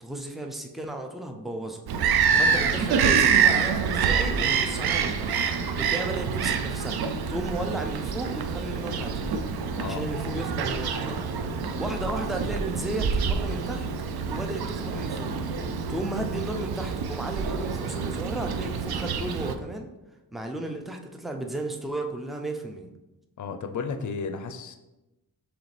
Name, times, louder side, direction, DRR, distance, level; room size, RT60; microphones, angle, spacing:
voice 1, 0.0-1.8 2.3-5.4 5.7-7.0 7.3-9.3 9.8-11.3 11.8-13.9 14.3-15.4 15.9-19.9 20.3-22.9, right 1 dB, ahead, 3 dB, 0.4 m, -34 dB
Bird vocalization bird call bird song, 1.9-19.5, right 6 dB, 80° right, 0.5 m, -26 dB
voice 2, 23.4-24.8, left 5 dB, 55° left, 7 dB, 0.5 m, -33 dB
4.9 x 3.3 x 3.3 m, 1.0 s
wide cardioid pair, 115°, 37 cm